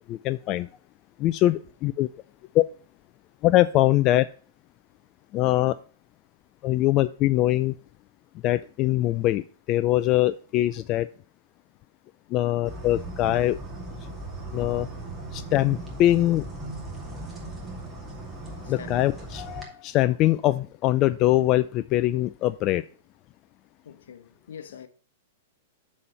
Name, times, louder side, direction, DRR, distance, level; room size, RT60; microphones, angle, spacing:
voice 1, 0.1-0.7 1.2-2.1 2.5-2.6 3.4-4.3 5.3-5.8 6.6-7.7 8.4-11.1 12.3-13.6 14.5-14.9 15.3-16.5 18.7-22.8, left 15 dB, 40° left, 0.3 m, -22 dB
sound 1, 12.6-19.6, right 2 dB, 10° right, 2.4 m, -38 dB
voice 2, 18.6-19.0 23.8-24.9, left 8 dB, 75° left, 0.9 m, -43 dB
7.4 x 4.2 x 6.7 m
hypercardioid pair, 120°, 0 cm